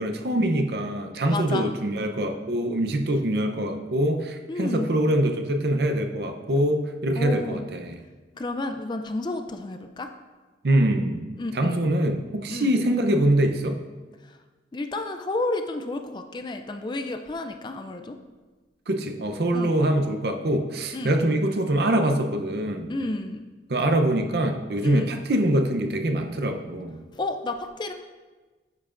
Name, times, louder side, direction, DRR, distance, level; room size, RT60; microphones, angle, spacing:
voice 1, 0.0-8.0 10.6-11.2 11.5-13.8 18.9-22.9 23.7-27.0, right 1 dB, 60° right, 5 dB, 0.7 m, -24 dB
voice 2, 1.3-1.7 4.5-4.9 7.1-7.7 8.3-10.1 11.4-11.8 12.5-12.7 14.2-14.4 14.7-18.2 19.5-19.8 20.9-21.2 22.9-23.4 24.8-25.2 27.1-27.9, left 2 dB, 25° left, 6 dB, 0.4 m, -31 dB
9.5 x 7.2 x 2.5 m, 1.3 s
head